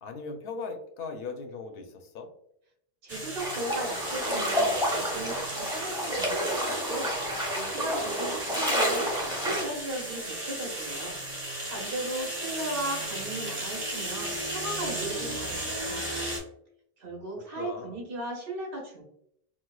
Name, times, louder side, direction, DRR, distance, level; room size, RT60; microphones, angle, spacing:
voice 1, 0.0-2.3 17.5-18.0, left 4 dB, 70° left, 4 dB, 0.8 m, -38 dB
voice 2, 3.0-9.1 9.4-11.1 11.7-16.2 17.0-19.0, right 1 dB, 65° right, -2 dB, 1.2 m, -37 dB
sound 1, 3.1-16.4, right 1 dB, 40° right, 1.2 m, -35 dB
sound 2, 3.4-9.6, equal, 5° right, 1.0 m, -29 dB
4.4 x 2.1 x 2.3 m, 0.72 s
omnidirectional pair, 1.0 m